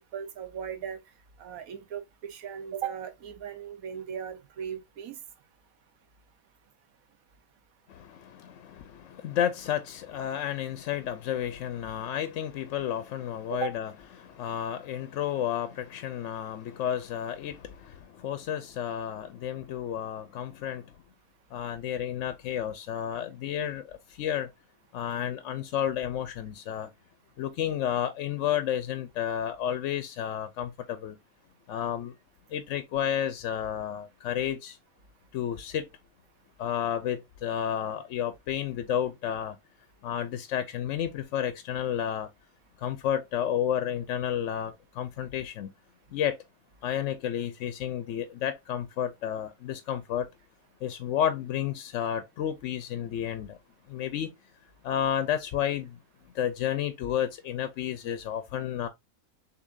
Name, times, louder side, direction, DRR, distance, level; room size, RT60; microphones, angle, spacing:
voice 1, 0.1-1.0 1.4-2.0 2.3-5.1 13.5-13.7, right 8 dB, 70° right, 1.2 m, -37 dB
voice 2, 7.9-13.9 14.2-20.9 21.5-24.5 24.9-26.9 27.4-31.2 31.7-32.1 32.5-34.8 35.3-35.9 36.6-39.6 40.0-42.3 42.8-45.7 46.1-46.4 46.8-50.3 50.8-53.6 53.9-54.3 54.8-56.0 56.3-58.9, left 10 dB, 65° left, 0.8 m, -31 dB
6.7 x 2.8 x 2.5 m
omnidirectional pair, 1.6 m